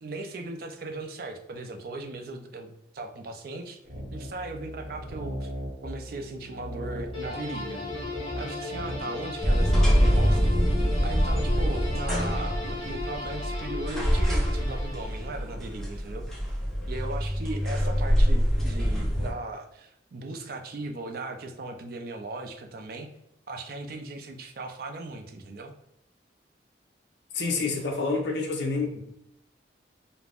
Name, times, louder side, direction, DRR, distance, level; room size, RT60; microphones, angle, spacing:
voice 1, 0.0-3.8 4.1-5.5 5.8-7.8 8.3-10.6 11.0-16.3 16.9-23.1 23.5-25.7, right 2 dB, 55° right, 5 dB, 0.4 m, -38 dB
sound 1, 3.8-12.0, equal, 35° right, 0.9 m, -38 dB
sound 2, 7.1-15.5, left 3 dB, 30° left, 1.0 m, -36 dB
sound 3, 9.4-19.3, equal, 5° left, 0.5 m, -25 dB
voice 2, 27.3-29.0, left 3 dB, 65° left, 2 dB, 0.5 m, -28 dB
2.4 x 2.1 x 3.3 m, 0.79 s
head